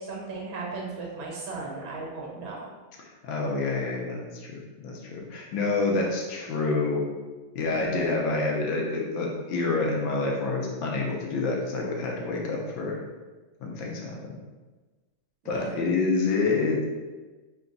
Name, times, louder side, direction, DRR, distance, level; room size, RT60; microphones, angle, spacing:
voice 1, 0.1-2.6 7.7-8.1 15.4-15.7, right 3 dB, 75° right, -3 dB, 1.6 m, -36 dB
voice 2, 3.0-7.0 7.5-13.0 13.6-14.3 15.5-16.8, left 3 dB, 75° left, -1 dB, 1.4 m, -28 dB
3.8 x 2.3 x 3.8 m, 1.3 s
omnidirectional pair, 2.3 m